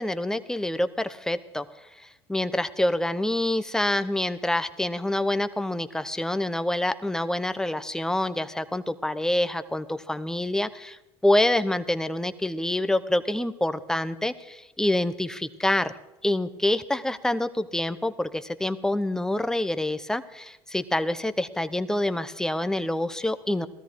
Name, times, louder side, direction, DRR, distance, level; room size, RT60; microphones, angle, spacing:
voice 1, 0.0-1.6 2.3-11.0 11.2-15.9 16.2-23.7, left 1 dB, 5° left, 12 dB, 0.9 m, -26 dB
16.5 x 13.5 x 4.7 m, 0.99 s
hypercardioid pair, 85°, 12 cm